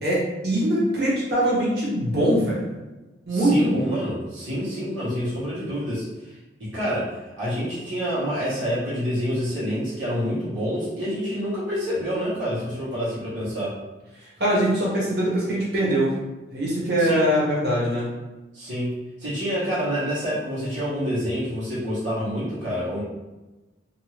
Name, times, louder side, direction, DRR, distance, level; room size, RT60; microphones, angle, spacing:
voice 1, 0.0-2.6 3.3-3.8 14.4-16.1 16.5-18.1, right 1 dB, 60° right, -6 dB, 1.2 m, -22 dB
voice 2, 3.3-6.3 6.6-13.8 17.0-17.2 18.5-18.9 19.2-23.0, equal, 85° right, -10 dB, 1.2 m, -27 dB
2.6 x 2.6 x 3.1 m, 1.1 s
head